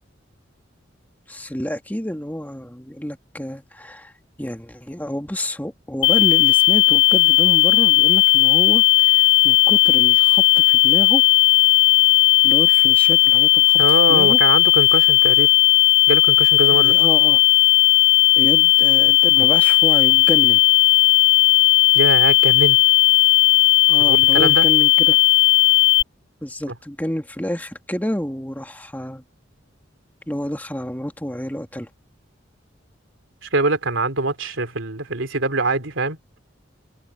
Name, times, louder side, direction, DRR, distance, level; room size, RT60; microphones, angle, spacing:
voice 1, 1.3-4.1 4.4-11.2 12.4-13.8 14.1-14.4 16.6-17.4 18.4-20.6 23.9-25.2 26.4-29.2 30.3-31.9, equal, 10° left, 1.9 m, -29 dB
sound 1, 6.0-26.0, left 19 dB, 70° left, 1.0 m, -15 dB
voice 2, 13.8-15.5 16.1-16.9 21.9-22.8 24.0-24.7 33.4-36.2, right 2 dB, 90° right, 3.1 m, -23 dB
head